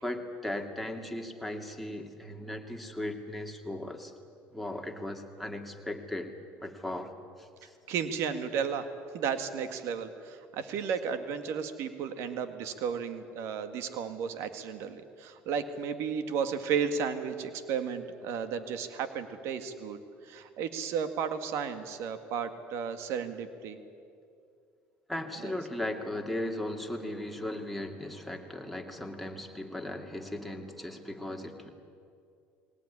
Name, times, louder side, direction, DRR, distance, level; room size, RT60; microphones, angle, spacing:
voice 1, 0.0-4.1 4.5-6.3 6.6-7.1 7.4-7.7 25.1-31.7, left 1 dB, ahead, 2 dB, 2.5 m, -37 dB
voice 2, 7.9-8.9 9.1-23.8 25.4-25.5, right 7 dB, 70° right, 9 dB, 1.9 m, -33 dB
21.0 x 18.0 x 9.9 m, 2.4 s
supercardioid pair, 100°, 5 cm